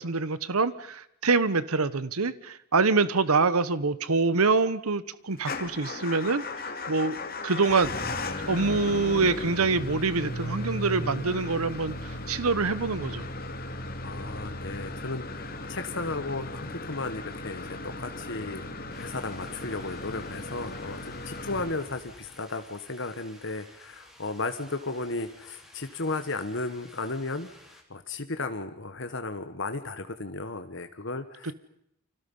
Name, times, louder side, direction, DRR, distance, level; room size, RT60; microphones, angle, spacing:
voice 1, 0.0-7.2 7.4-7.9 8.5-13.2 31.4-31.5, right 4 dB, 80° right, 16 dB, 1.1 m, -25 dB
Motor vehicle (road) / Engine starting / Idling, 5.4-22.4, left 2 dB, 40° left, 2.5 m, -36 dB
voice 2, 13.7-31.5, left 3 dB, 55° left, 8 dB, 1.4 m, -35 dB
sound 1, 18.9-27.8, left 1 dB, ahead, 3.7 m, -54 dB
30.0 x 25.5 x 5.6 m, 0.77 s
head